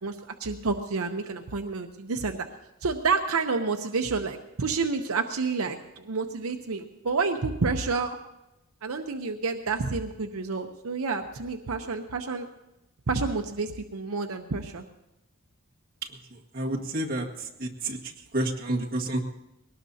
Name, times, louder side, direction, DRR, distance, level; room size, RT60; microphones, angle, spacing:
voice 1, 0.0-2.5 2.8-8.2 8.8-12.5 13.1-14.8, right 4 dB, 80° right, 5 dB, 0.8 m, -29 dB
voice 2, 16.3-19.2, right 1 dB, 45° right, -2 dB, 1.8 m, -30 dB
22.0 x 18.5 x 2.8 m, 0.92 s
head